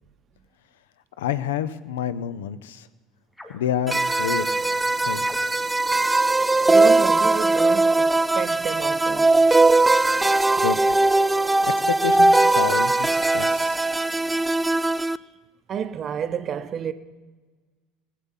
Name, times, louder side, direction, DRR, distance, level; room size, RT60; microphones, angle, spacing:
voice 1, 1.2-2.9 3.5-4.5 5.1-5.3 10.6-10.8 11.6-13.8, left 9 dB, 70° left, 0.6 m, -28 dB
sound 1, 3.3-3.7 5.2-5.8 7.5-7.9, left 1 dB, 10° left, 2.5 m, -43 dB
sound 2, 3.9-15.2, right 2 dB, 10° right, 0.3 m, -20 dB
voice 2, 6.7-9.3 15.0-15.1 15.7-16.9, right 8 dB, 40° right, 0.7 m, -30 dB
20.0 x 7.5 x 5.7 m
figure-of-eight pair, 70°, 0 cm